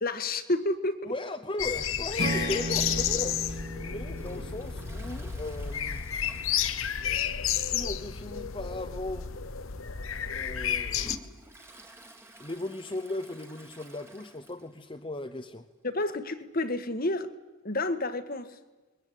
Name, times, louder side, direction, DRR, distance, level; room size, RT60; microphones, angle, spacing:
voice 1, 0.0-1.1 15.8-17.3 17.6-18.6, left 2 dB, 40° left, 1.5 m, -30 dB
voice 2, 1.0-6.1 7.5-9.3 10.3-11.1 12.4-15.7, left 2 dB, 25° left, 0.9 m, -37 dB
sound 1, 1.6-11.2, left 8 dB, 65° left, 1.1 m, -31 dB
Strum, 2.2-6.4, right 1 dB, 50° right, 2.6 m, -36 dB
Toilet flush, 4.1-7.6 7.9-8.0 8.4-8.5 9.3-9.4 10.0-14.9 15.2-15.3 15.5-15.6 16.6-16.7, right 1 dB, 10° right, 1.8 m, -51 dB
27.5 x 22.5 x 8.4 m
head